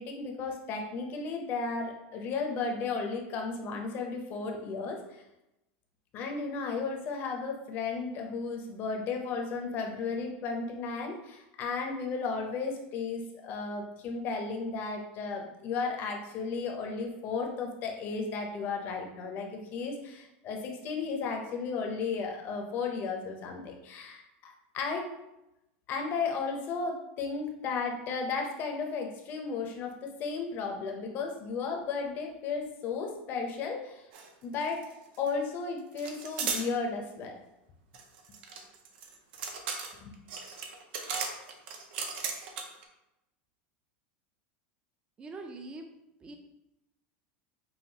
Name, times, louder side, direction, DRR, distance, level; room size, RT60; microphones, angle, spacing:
voice 1, 0.0-5.2 6.1-25.0 25.9-34.0 34.4-34.8 35.2-37.3 40.0-40.1, left 4 dB, 35° left, 2 dB, 0.6 m, -34 dB
sound 1, 34.1-34.3 34.5-35.3 36.0-36.7 37.9-42.8, right 5 dB, 70° right, 0.6 m, -36 dB
voice 2, 45.2-45.8 46.2-46.3, right 2 dB, 15° right, 4 dB, 0.4 m, -42 dB
5.5 x 2.3 x 2.8 m, 0.90 s
supercardioid pair, 160°, 6 cm